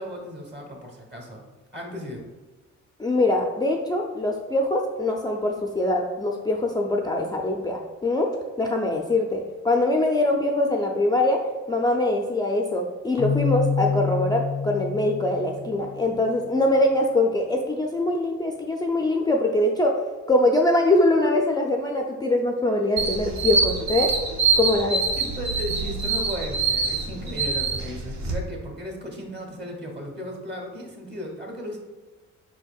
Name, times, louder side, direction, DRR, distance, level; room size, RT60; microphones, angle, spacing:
voice 1, 0.0-1.4 1.7-2.2 25.2-31.8, equal, 35° right, 1 dB, 1.3 m, -35 dB
voice 2, 3.0-8.3 8.6-11.4 11.7-20.0 20.3-24.1 24.6-25.0, left 2 dB, 15° left, 1 dB, 0.4 m, -23 dB
Keyboard (musical), 13.2-16.1, left 6 dB, 15° right, 0.8 m, -27 dB
sound 1, 23.0-28.3, right 4 dB, 65° right, 0.8 m, -25 dB
5.0 x 4.3 x 2.3 m, 1.2 s
cardioid pair, 90°, 30 cm